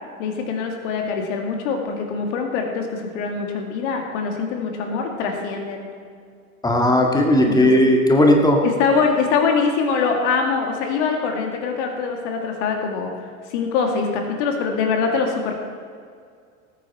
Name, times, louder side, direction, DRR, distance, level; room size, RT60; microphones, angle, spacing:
voice 1, 0.2-5.9 7.4-7.7 8.6-15.5, left 5 dB, 55° left, 3 dB, 2.1 m, -23 dB
voice 2, 6.6-8.6, left 1 dB, 10° left, 2 dB, 1.8 m, -16 dB
19.0 x 9.1 x 4.3 m, 2.2 s
figure-of-eight pair, 80°, 42 cm